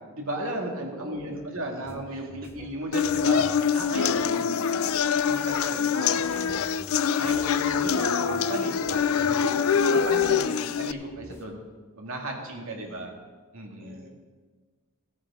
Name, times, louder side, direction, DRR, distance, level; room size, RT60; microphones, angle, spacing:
voice 1, 0.1-4.9 5.2-6.6 7.2-11.6 12.0-13.1 13.5-14.0, right 1 dB, 75° right, 1 dB, 2.1 m, -35 dB
voice 2, 0.7-2.3 3.8-4.3 5.3-6.8 12.4-13.1 13.8-14.1, right 1 dB, 45° right, 0 dB, 2.0 m, -48 dB
sound 1, 1.8-11.4, left 1 dB, 10° left, 1.0 m, -48 dB
sound 2, 2.9-10.9, left 7 dB, 75° left, 0.4 m, -24 dB
16.0 x 9.4 x 3.7 m, 1.4 s
head